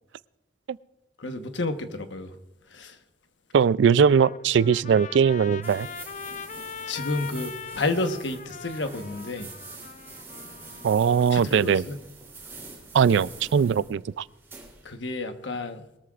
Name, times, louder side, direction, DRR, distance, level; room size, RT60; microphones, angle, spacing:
voice 1, 1.2-2.3 2.7-3.0 6.9-9.5 11.3-12.0 14.8-15.8, left 2 dB, 75° left, 1.1 m, -30 dB
voice 2, 3.5-5.9 10.8-11.8 12.9-14.2, right 7 dB, 70° right, 0.3 m, -20 dB
Trumpet, 3.8-11.3, left 6 dB, 40° left, 0.4 m, -41 dB
sound 1, 5.6-14.9, right 3 dB, 15° right, 3.1 m, -45 dB
21.0 x 13.5 x 2.4 m
head